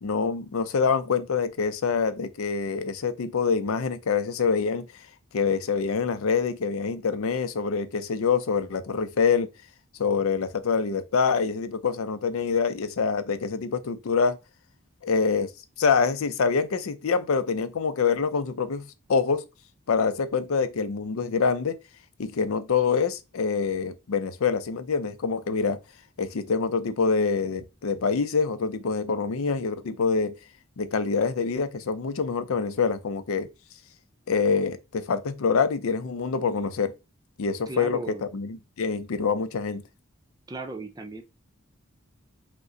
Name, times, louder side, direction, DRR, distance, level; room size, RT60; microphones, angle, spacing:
voice 1, 0.0-4.9 5.3-9.5 10.0-14.4 15.0-15.5 15.8-19.4 19.9-21.8 22.2-25.8 26.2-30.3 30.8-33.5 34.3-36.9 37.4-38.0 38.3-39.8, left 5 dB, 80° left, 0.5 m, -25 dB
voice 2, 37.7-38.2 40.5-41.2, right 3 dB, 15° right, 0.5 m, -36 dB
5.2 x 2.1 x 3.7 m
head